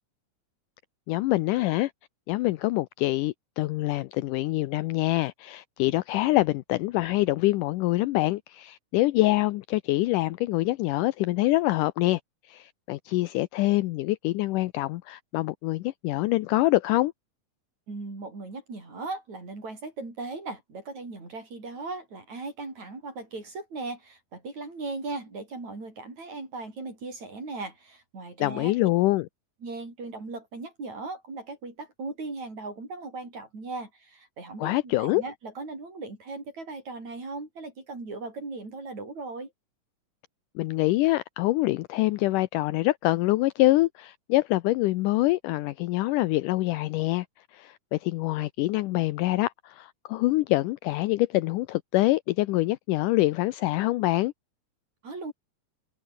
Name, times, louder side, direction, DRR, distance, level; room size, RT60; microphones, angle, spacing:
voice 1, 1.1-1.9 2.3-12.2 12.5-17.1 28.4-29.3 34.6-35.2 40.6-47.3 47.5-54.3, left 18 dB, 80° left, 2.1 m, -25 dB
voice 2, 17.9-28.7 29.6-39.5 55.0-55.3, right 3 dB, 55° right, 9.2 m, -38 dB
omnidirectional pair, 4.0 m